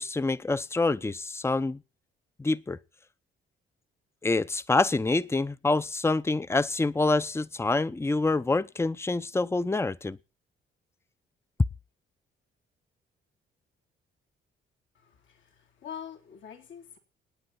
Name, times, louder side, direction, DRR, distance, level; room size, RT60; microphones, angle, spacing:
voice 1, 0.0-1.8 2.4-2.8 4.2-10.2, left 3 dB, 15° left, 0.8 m, -26 dB
voice 2, 14.9-17.0, left 8 dB, 70° left, 3.8 m, -44 dB
26.0 x 9.7 x 4.3 m
cardioid pair, 90°, 20 cm